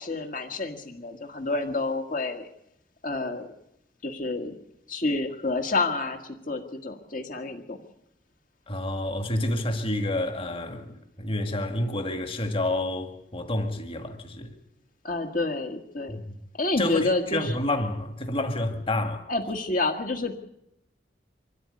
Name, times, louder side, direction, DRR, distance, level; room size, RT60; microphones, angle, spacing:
voice 1, 0.0-2.5 3.0-3.5 4.0-4.5 4.9-7.8 15.0-16.2 16.6-17.6 19.3-20.3, left 2 dB, 50° left, 1.8 m, -29 dB
voice 2, 8.7-14.5 16.1-16.2 16.8-19.2, left 1 dB, 30° left, 2.0 m, -29 dB
25.0 x 13.0 x 9.7 m
head